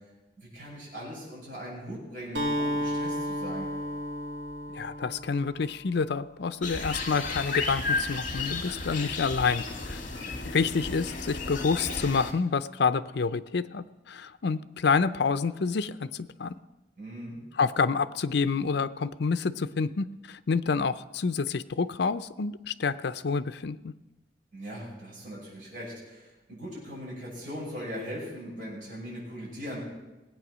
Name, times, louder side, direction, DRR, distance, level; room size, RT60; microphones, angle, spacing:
voice 1, 0.4-3.7 10.0-10.4 17.0-17.4 24.5-29.8, equal, 50° right, -6 dB, 6.1 m, -40 dB
Acoustic guitar, 2.3-6.2, equal, 90° right, 2.4 m, -33 dB
voice 2, 4.8-10.0 10.4-16.5 17.6-23.9, left 5 dB, 65° left, 13 dB, 0.5 m, -28 dB
sound 1, 6.6-12.3, left 3 dB, 45° left, 1.8 m, -33 dB
19.0 x 8.8 x 6.2 m, 1.1 s
head